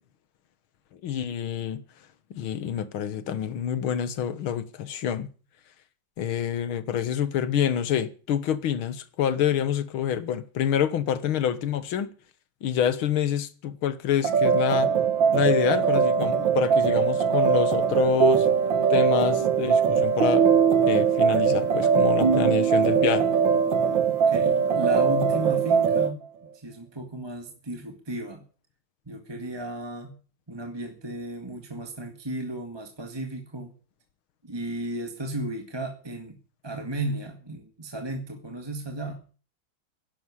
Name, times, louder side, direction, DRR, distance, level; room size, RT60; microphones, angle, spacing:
voice 1, 1.0-1.8 2.3-5.3 6.2-12.1 12.6-14.9 15.3-18.5 18.9-20.5 20.9-23.3, left 9 dB, 85° left, 2.1 m, -27 dB
sound 1, 14.2-26.1, right 6 dB, 70° right, 2.1 m, -21 dB
voice 2, 24.2-28.4 29.0-30.2 30.5-33.7 34.4-36.4 36.6-39.2, right 1 dB, 15° right, 1.8 m, -34 dB
11.5 x 11.5 x 9.7 m
omnidirectional pair, 2.2 m